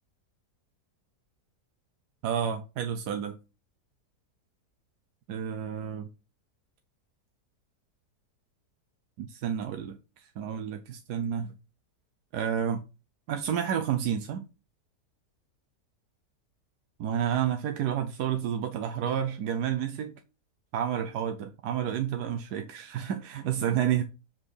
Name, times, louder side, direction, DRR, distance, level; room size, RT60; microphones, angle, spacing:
voice 1, 2.2-3.4 5.3-6.1 9.2-11.6 12.3-12.8 13.3-14.5 17.0-20.1 20.7-24.0, right 9 dB, 75° right, 1.2 m, -30 dB
7.4 x 4.4 x 4.8 m
omnidirectional pair, 1.8 m